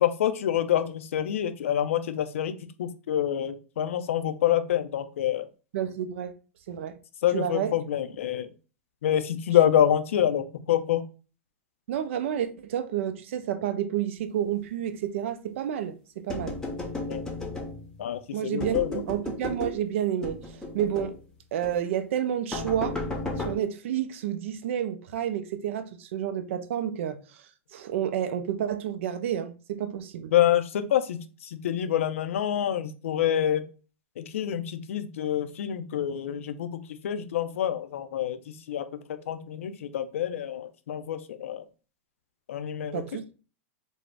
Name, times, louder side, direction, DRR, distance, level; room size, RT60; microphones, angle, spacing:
voice 1, 0.0-2.5 2.8-5.5 7.2-8.5 9.0-11.0 17.1-17.2 18.0-19.0 30.3-33.6 34.2-41.6 42.5-43.0, left 10 dB, 75° left, 0.4 m, -27 dB
voice 2, 5.7-6.3 6.7-7.0 7.3-7.7 11.9-16.6 18.3-20.4 20.7-21.1 21.5-23.0 23.4-27.4 27.7-30.3 42.9-43.2, right 10 dB, 65° right, 0.4 m, -30 dB
sound 1, 16.3-18.0 18.6-19.8 20.2-21.2 21.6-21.8 22.5-23.5, left 2 dB, 10° left, 0.7 m, -34 dB
2.5 x 2.0 x 3.2 m
hypercardioid pair, 105°, 7 cm